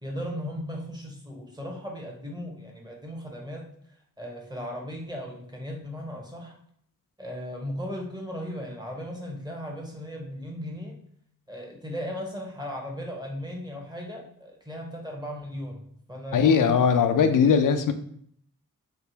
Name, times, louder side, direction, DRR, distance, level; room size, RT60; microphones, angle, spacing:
voice 1, 0.0-3.7 4.2-6.6 7.2-11.0 11.5-16.8, equal, 10° right, -1 dB, 1.1 m, -36 dB
voice 2, 16.3-17.9, left 6 dB, 70° left, 8 dB, 0.5 m, -20 dB
3.4 x 2.4 x 2.8 m, 0.65 s
cardioid pair, 45°, 34 cm